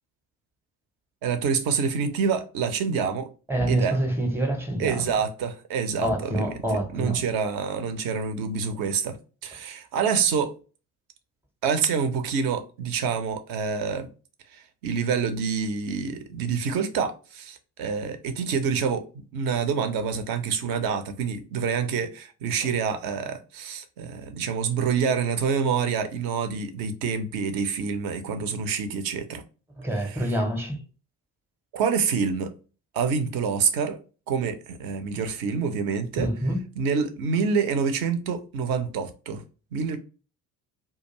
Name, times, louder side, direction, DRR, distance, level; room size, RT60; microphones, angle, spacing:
voice 1, 1.2-3.3 3.7-4.0 4.8-6.5 6.9-9.2 9.4-10.6 11.6-14.1 14.5-19.1 19.3-29.4 30.0-30.3 31.7-32.5 32.9-34.0 34.3-36.3 36.8-39.4 39.7-40.0, right 6 dB, 50° right, 0.6 m, -27 dB
voice 2, 3.5-5.1 6.0-7.2 29.8-30.8 36.2-36.6, right 1 dB, 5° right, 0.7 m, -26 dB
2.3 x 2.2 x 2.9 m
figure-of-eight pair, 60°, 46 cm